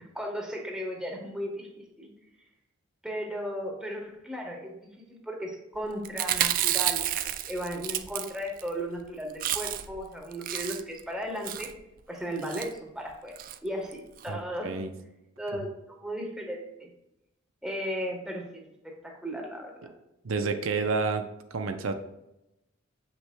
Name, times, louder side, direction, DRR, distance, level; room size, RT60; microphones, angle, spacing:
voice 1, 0.1-2.1 3.0-11.7 12.1-14.7 15.4-16.9 17.6-19.9, equal, 5° right, 0 dB, 1.2 m, -36 dB
Chewing mastication, 6.0-8.7 9.0-9.1 9.3-10.0 10.3-11.0 11.4-11.8 12.4-12.7 13.4-13.6 13.9-14.0 14.2-14.3, right 12 dB, 45° right, 0.3 m, -30 dB
voice 2, 14.3-14.9 15.6-15.7 20.2-21.2 21.5-21.9, right 4 dB, 85° right, 6 dB, 0.6 m, -29 dB
7.7 x 5.9 x 2.2 m, 0.89 s
head